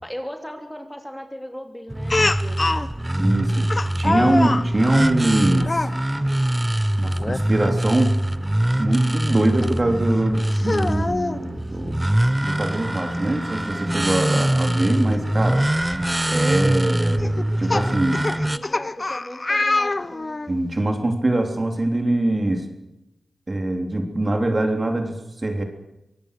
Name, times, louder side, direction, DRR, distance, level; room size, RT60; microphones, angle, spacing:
voice 1, 0.0-2.7 18.5-20.4, equal, 5° left, 5 dB, 3.0 m, -37 dB
sound 1, 1.9-18.6, right 1 dB, 15° right, 0.9 m, -23 dB
Speech, 2.1-2.9 3.7-4.7 5.6-5.9 7.2-7.4 7.9-8.0 9.6-9.7 10.5-11.4 12.7-12.8 13.1-13.2 15.1-15.2 15.9-16.1 17.2-20.5, left 2 dB, 35° left, 1.0 m, -24 dB
voice 2, 3.1-5.9 7.0-8.2 8.8-12.0 12.4-15.6 16.3-18.3 20.5-22.7 23.5-25.6, right 1 dB, 35° right, 5 dB, 3.5 m, -23 dB
24.5 x 17.5 x 6.8 m, 0.88 s
cardioid pair, 65°, 0 cm